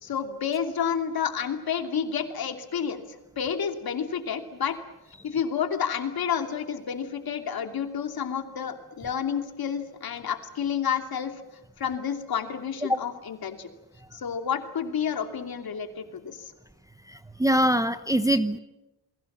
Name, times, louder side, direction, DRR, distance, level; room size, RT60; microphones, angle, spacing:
voice 1, 0.0-4.8 5.2-11.3 11.8-13.7 14.1-16.5, left 7 dB, 55° left, 6 dB, 2.9 m, -30 dB
voice 2, 17.1-18.6, right 1 dB, 10° right, 9 dB, 0.8 m, -23 dB
29.5 x 21.5 x 7.4 m, 0.96 s
wide cardioid pair, 165°, 42 cm